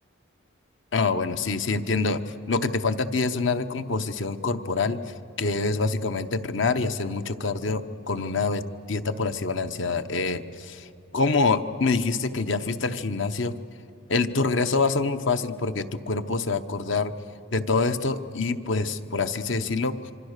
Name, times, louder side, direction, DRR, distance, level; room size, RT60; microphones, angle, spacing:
voice 1, 0.9-5.0 5.4-10.9 11.1-13.6 14.1-17.1 17.5-20.1, left 3 dB, 65° left, 11 dB, 0.9 m, -26 dB
25.5 x 25.5 x 6.6 m, 2.7 s
head